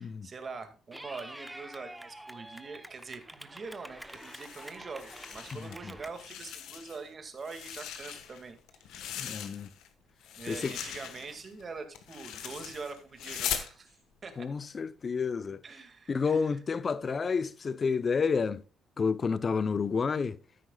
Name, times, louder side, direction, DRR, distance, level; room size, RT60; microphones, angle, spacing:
voice 1, 0.0-8.6 10.4-14.0 14.2-14.5 15.6-16.5, right 4 dB, 40° right, 2.2 m, -44 dB
Clapping / Cheering, 0.9-6.1, right 1 dB, 5° right, 0.9 m, -47 dB
sound 1, 4.1-5.8 6.1-7.1 7.4-9.9 10.2-13.7, left 9 dB, 85° left, 1.3 m, -40 dB
voice 2, 5.5-5.9 9.2-9.7 10.5-10.7 14.4-15.6 16.1-18.6 19.0-20.4, left 5 dB, 40° left, 0.7 m, -30 dB
13.0 x 9.8 x 2.4 m
cardioid pair, 90°, 0 cm